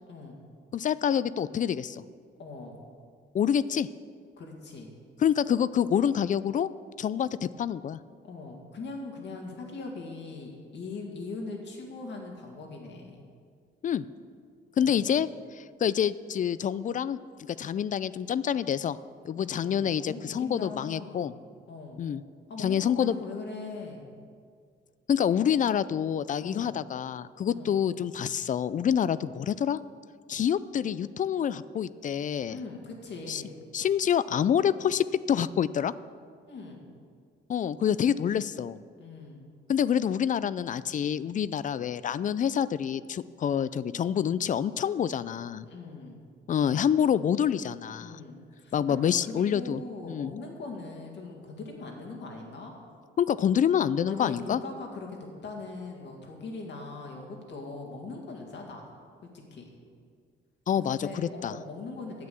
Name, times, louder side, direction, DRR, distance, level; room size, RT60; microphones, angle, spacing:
voice 1, 0.1-0.4 2.4-2.8 4.4-4.9 8.2-13.2 14.8-15.0 19.4-21.3 21.7-22.0 22.5-24.1 26.4-26.7 27.5-27.7 32.5-33.6 36.5-36.9 39.0-39.5 45.6-46.2 48.0-52.7 54.1-58.9 59.5-59.7 60.8-62.3, left 3 dB, 65° left, 1 dB, 2.1 m, -41 dB
voice 2, 0.7-2.0 3.3-3.9 5.2-6.7 7.0-8.0 13.8-14.0 14.8-17.2 17.6-19.0 19.2-21.3 22.0-22.2 22.6-23.1 25.1-29.8 30.3-32.6 33.3-33.4 33.7-35.9 37.5-38.8 39.7-45.7 46.5-48.2 48.7-50.3 53.2-54.6 60.7-61.5, left 8 dB, 40° left, 17 dB, 0.4 m, -27 dB
9.5 x 8.1 x 6.9 m, 2.1 s
cardioid pair, 90°, 20 cm